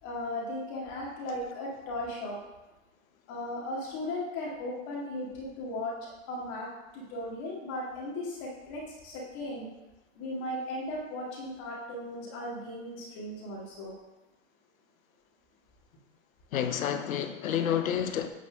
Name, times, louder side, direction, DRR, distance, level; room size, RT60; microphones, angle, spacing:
voice 1, 0.0-2.4 3.3-6.7 6.9-9.7 10.2-13.9, left 1 dB, 45° left, -4 dB, 2.1 m, -37 dB
voice 2, 16.5-18.3, left 9 dB, 90° left, 9 dB, 0.8 m, -29 dB
8.8 x 4.2 x 3.5 m, 1.0 s
hypercardioid pair, 120°, 40 cm